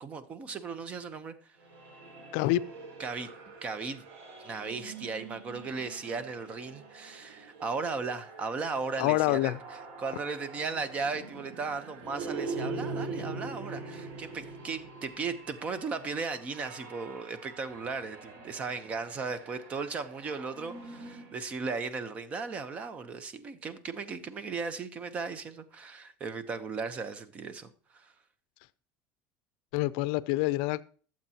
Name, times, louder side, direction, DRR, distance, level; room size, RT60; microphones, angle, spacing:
voice 1, 0.0-1.5 3.0-3.3 3.6-4.0 4.4-9.6 10.0-28.1, right 4 dB, 25° right, 0.8 m, -36 dB
sound 1, 1.6-21.4, right 3 dB, 70° right, 4.9 m, -43 dB
voice 2, 9.0-9.6 29.7-30.8, left 17 dB, 75° left, 0.4 m, -26 dB
21.0 x 7.4 x 2.9 m
cardioid pair, 170°, 5 cm